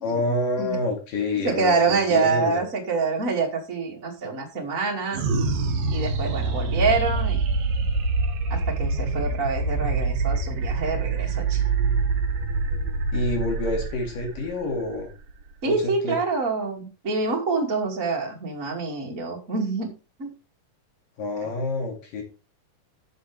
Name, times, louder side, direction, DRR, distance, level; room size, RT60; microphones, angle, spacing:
voice 1, 0.0-2.6 13.1-15.1 15.6-16.2 21.2-22.2, left 2 dB, 70° left, 2 dB, 4.0 m, -28 dB
voice 2, 1.4-5.2 5.9-7.4 8.5-11.6 15.6-19.9 20.2-20.3 21.4-21.5, right 4 dB, 25° right, -1 dB, 2.5 m, -26 dB
sound 1, 5.1-15.8, right 3 dB, 80° right, 3.3 m, -25 dB
12.5 x 7.7 x 3.4 m, 0.31 s
omnidirectional pair, 4.1 m